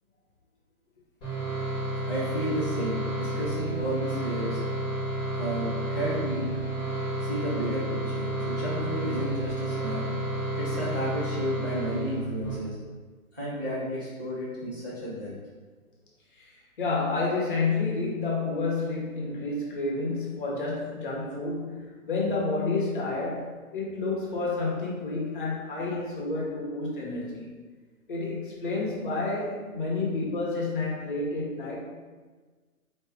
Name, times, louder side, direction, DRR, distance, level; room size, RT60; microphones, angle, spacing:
sound 1, 1.2-12.5, right 1 dB, 10° left, 1.3 m, -31 dB
voice 1, 2.1-4.6 5.4-6.5 7.2-10.0 10.5-12.8 13.3-15.3, equal, 15° right, -13 dB, 0.5 m, -32 dB
voice 2, 16.3-27.5 28.1-31.8, left 3 dB, 35° left, -3 dB, 1.0 m, -30 dB
4.5 x 2.9 x 3.5 m, 1.4 s
hypercardioid pair, 150°, 44 cm